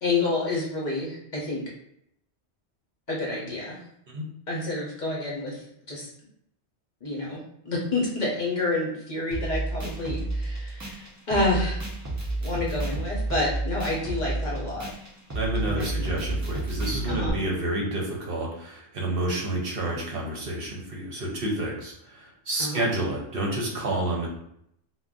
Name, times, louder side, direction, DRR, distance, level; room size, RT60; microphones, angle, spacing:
voice 1, 0.0-1.6 3.1-3.8 4.5-6.1 7.0-7.4 7.7-11.8 12.4-14.9 15.7-16.0 17.1-17.4 22.6-22.9, left 2 dB, 50° left, -4 dB, 0.8 m, -29 dB
sound 1, 9.3-17.3, right 2 dB, 25° right, 0.4 m, -31 dB
voice 2, 15.3-24.3, right 1 dB, 60° right, -2 dB, 0.8 m, -29 dB
2.4 x 2.2 x 3.5 m, 0.74 s
omnidirectional pair, 1.1 m